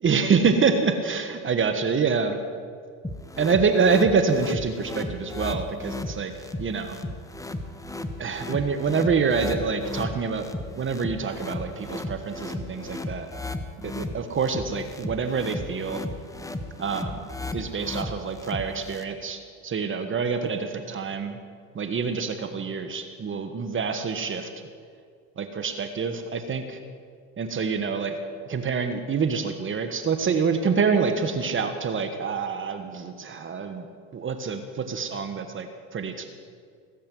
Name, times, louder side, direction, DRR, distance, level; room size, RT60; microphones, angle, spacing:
voice 1, 0.0-2.4 3.4-6.3 6.6-7.0 8.2-10.5 10.8-13.3 13.8-16.0 16.8-17.2 17.5-21.4 21.7-24.5 25.4-26.8 27.4-28.2 28.5-33.9 34.1-36.3, right 5 dB, 30° right, 7 dB, 1.4 m, -26 dB
sound 1, 3.0-19.0, left 2 dB, 10° left, 1.0 m, -35 dB
18.0 x 7.6 x 9.3 m, 2.1 s
hypercardioid pair, 95°, 42 cm